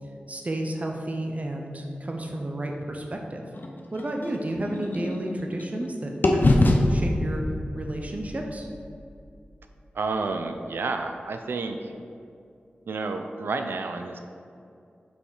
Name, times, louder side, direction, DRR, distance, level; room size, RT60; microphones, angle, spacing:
voice 1, 0.3-3.4 3.9-6.6 6.9-7.4 7.7-8.7, right 1 dB, 40° right, 2 dB, 0.7 m, -31 dB
sound 1, 3.5-5.9 6.2-10.2, left 2 dB, 60° left, 0.6 m, -26 dB
voice 2, 9.9-11.9 12.9-14.2, right 3 dB, 85° right, 6 dB, 0.4 m, -30 dB
5.5 x 4.3 x 4.7 m, 2.5 s
cardioid pair, 50°, 4 cm